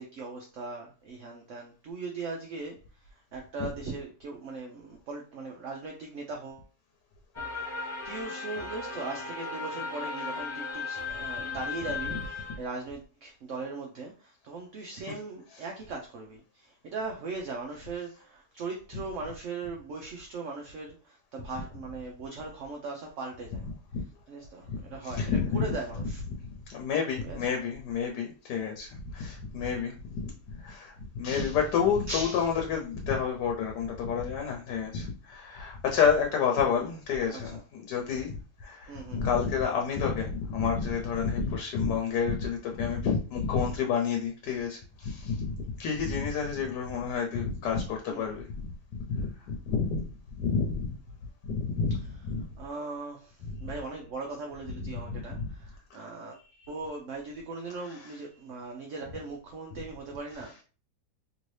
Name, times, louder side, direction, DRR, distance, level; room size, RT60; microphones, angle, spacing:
voice 1, 0.0-2.8 3.1-6.7 7.7-23.6 24.3-26.2 27.2-27.6 32.1-32.5 37.3-37.6 38.9-39.3 39.6-39.7 48.1-48.3 52.6-56.4 56.7-60.5, right 3 dB, 65° right, 1 dB, 0.8 m, -39 dB
sound 1, 7.3-12.6, left 4 dB, 25° left, 0.7 m, -36 dB
voice 2, 24.7-25.6 26.0-30.3 30.6-38.3 38.6-48.7 49.1-50.0 50.4-50.9 51.4-52.5 53.4-53.6 54.8-55.5 56.6-56.7 57.8-58.2 59.7-59.8 60.4-60.6, left 6 dB, 90° left, 1 dB, 1.2 m, -30 dB
3.0 x 2.7 x 3.1 m, 0.36 s
omnidirectional pair, 1.7 m